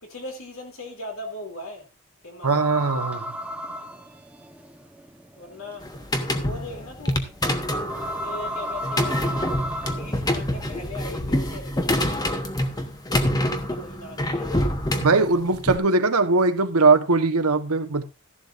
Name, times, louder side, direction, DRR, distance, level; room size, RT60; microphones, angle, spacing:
voice 1, 0.0-1.9 2.2-2.6 5.3-5.9 6.4-7.3 8.2-9.3 9.8-12.4 13.1-14.8, left 2 dB, 65° left, 3.1 m, -39 dB
sound 1, 2.4-10.8, equal, 5° right, 1.0 m, -34 dB
voice 2, 2.4-3.3 15.0-18.0, right 3 dB, 80° right, 1.2 m, -20 dB
sound 2, 5.8-15.8, left 1 dB, 15° left, 1.1 m, -26 dB
14.0 x 11.0 x 2.6 m
head